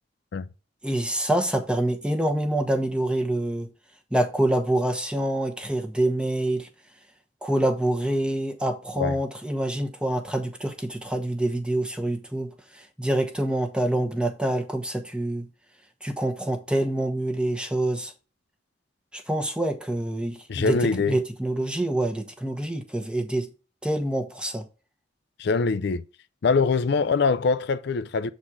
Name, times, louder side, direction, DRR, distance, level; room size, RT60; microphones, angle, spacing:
voice 1, 0.8-3.7 4.1-6.7 7.4-15.5 16.0-18.1 19.1-23.5 23.8-24.6, right 1 dB, 5° right, 1.0 m, -26 dB
voice 2, 20.5-21.2 25.4-26.0 26.4-28.3, left 4 dB, 60° left, 0.4 m, -23 dB
7.4 x 4.2 x 4.7 m
head